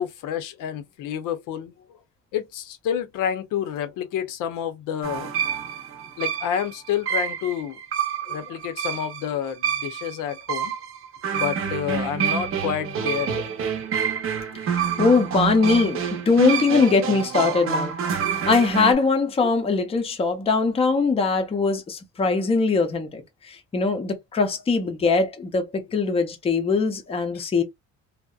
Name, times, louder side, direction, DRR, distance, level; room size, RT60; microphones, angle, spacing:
voice 1, 0.0-1.7 2.3-5.3 6.2-7.8 8.3-10.7 11.3-13.5 19.4-19.5 27.3-27.4, left 9 dB, 80° left, 0.6 m, -29 dB
sound 1, 5.0-18.9, right 7 dB, 45° right, 0.7 m, -27 dB
voice 2, 14.7-17.9 18.5-23.2 23.5-27.6, left 4 dB, 20° left, 0.5 m, -21 dB
2.6 x 2.0 x 2.3 m
cardioid pair, 130°, 31 cm